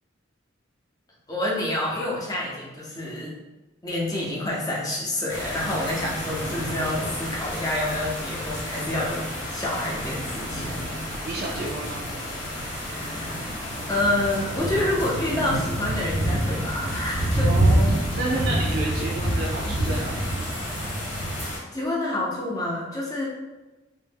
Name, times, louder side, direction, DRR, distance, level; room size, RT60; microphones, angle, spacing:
voice 1, 1.3-3.3 3.8-10.7 12.8-13.4 13.9-17.5 21.2-21.4 21.7-23.3, left 1 dB, 20° left, -4 dB, 0.5 m, -28 dB
sound 1, 5.3-21.6, equal, 85° left, 1.0 m, -28 dB
voice 2, 11.2-12.0 17.4-20.3, right 2 dB, 50° right, -4 dB, 0.3 m, -30 dB
2.0 x 2.0 x 3.3 m, 1.1 s
head